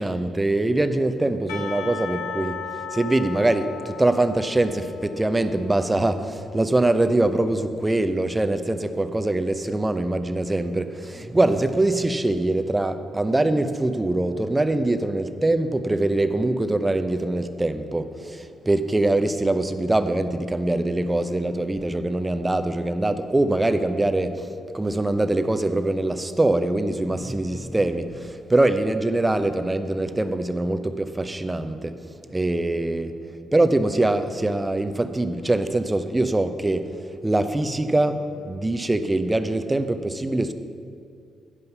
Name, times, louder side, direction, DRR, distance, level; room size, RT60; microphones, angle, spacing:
voice 1, 0.0-40.5, right 2 dB, 20° right, 9 dB, 0.7 m, -23 dB
Percussion / Church bell, 1.5-6.5, left 7 dB, 80° left, 0.8 m, -36 dB
9.9 x 5.4 x 6.8 m, 2.3 s
hypercardioid pair, 40°, 0 cm